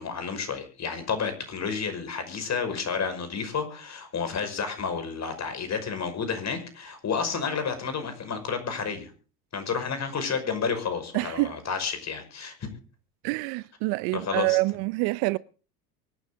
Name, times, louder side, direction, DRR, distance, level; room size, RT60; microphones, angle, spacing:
voice 1, 0.0-9.1 9.5-12.6 14.1-14.6, left 6 dB, 35° left, 5.7 m, -31 dB
voice 2, 11.1-11.5 13.2-15.4, right 23 dB, 55° right, 0.7 m, -26 dB
24.5 x 9.8 x 4.0 m
hypercardioid pair, 80°, 47 cm